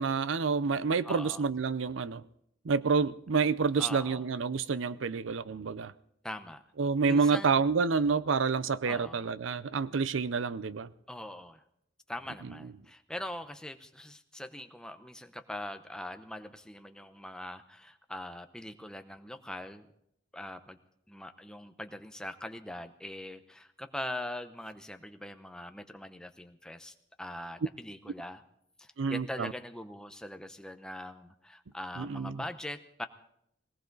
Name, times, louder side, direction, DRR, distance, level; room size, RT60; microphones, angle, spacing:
voice 1, 0.0-2.2 2.6-5.9 6.8-10.9 29.0-29.5 32.0-32.4, right 5 dB, 85° right, 0.6 m, -28 dB
voice 2, 1.0-1.4 3.8-4.2 6.2-6.6 7.1-7.6 8.8-9.3 11.1-11.6 12.1-19.9 20.3-20.8 21.1-28.4 28.8-33.1, left 1 dB, 5° left, 0.7 m, -42 dB
20.0 x 18.0 x 3.9 m
head